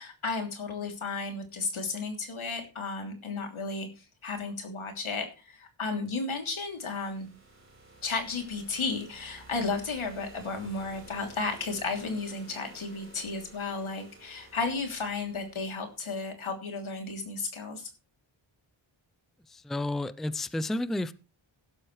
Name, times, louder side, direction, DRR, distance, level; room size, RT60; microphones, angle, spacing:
voice 1, 0.0-7.3 8.0-17.9, left 3 dB, 90° left, 3 dB, 3.2 m, -33 dB
sound 1, 6.4-16.2, right 2 dB, 25° right, 4.2 m, -53 dB
voice 2, 19.5-21.1, left 1 dB, ahead, 15 dB, 0.5 m, -31 dB
16.0 x 12.0 x 3.2 m, 0.33 s
wide cardioid pair, 110°, 47 cm